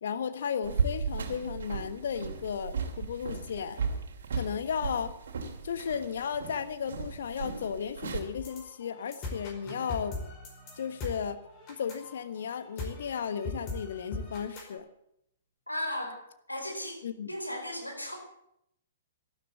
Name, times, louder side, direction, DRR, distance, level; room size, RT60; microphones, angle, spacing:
voice 1, 0.0-3.8 4.3-5.1 5.6-10.2 10.8-11.4 11.7-14.9 17.0-17.3, left 7 dB, 60° left, 11 dB, 1.4 m, -34 dB
sound 1, 0.6-8.2, right 5 dB, 60° right, 2.7 m, -35 dB
sound 2, 8.4-14.8, left 2 dB, 30° left, 4.8 m, -40 dB
Bowed string instrument, 9.7-12.5, right 2 dB, 20° right, 4.5 m, -55 dB
voice 2, 15.7-16.2 16.5-17.0 17.3-18.2, left 1 dB, 85° left, 2 dB, 4.8 m, -35 dB
13.0 x 12.5 x 8.3 m, 0.77 s
figure-of-eight pair, 115°, 0 cm